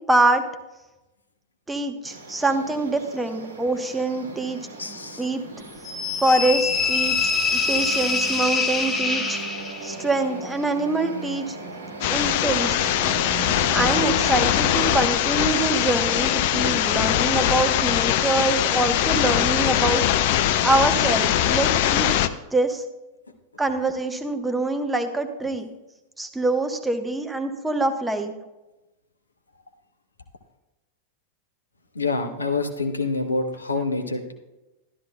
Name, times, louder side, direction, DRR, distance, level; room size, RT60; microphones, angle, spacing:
voice 1, 0.1-0.4 1.7-4.6 4.9-5.4 6.2-9.4 9.8-11.6 12.1-12.8 13.7-20.0 20.6-22.1 22.5-22.8 23.6-25.7 26.2-28.3, right 2 dB, 10° right, 6 dB, 1.0 m, -24 dB
sound 1, 2.0-14.5, right 2 dB, 70° right, 1.2 m, -37 dB
voice 2, 4.8-5.3 9.3-9.4 31.9-34.3, left 3 dB, 75° left, 6 dB, 0.9 m, -27 dB
sound 2, 5.8-10.0, left 4 dB, 15° left, 1.1 m, -24 dB
sound 3, 12.0-22.3, left 12 dB, 50° left, 0.5 m, -21 dB
12.5 x 12.0 x 2.2 m, 1.0 s
figure-of-eight pair, 90°, 0 cm